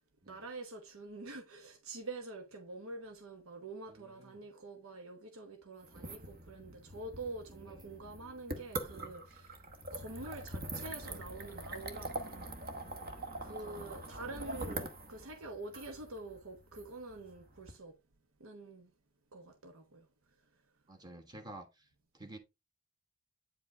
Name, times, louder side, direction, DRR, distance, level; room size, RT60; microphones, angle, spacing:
voice 1, 0.3-9.6 9.9-12.6 13.4-18.0 18.4-18.9 19.3-20.1, right 2 dB, 80° right, 1.1 m, -46 dB
voice 2, 3.9-4.5 5.9-6.1 7.7-7.9 13.4-14.0 20.9-22.4, right 1 dB, 20° right, 1.3 m, -52 dB
sound 1, 5.8-17.7, right 2 dB, 45° right, 1.1 m, -44 dB
8.9 x 5.1 x 3.2 m
head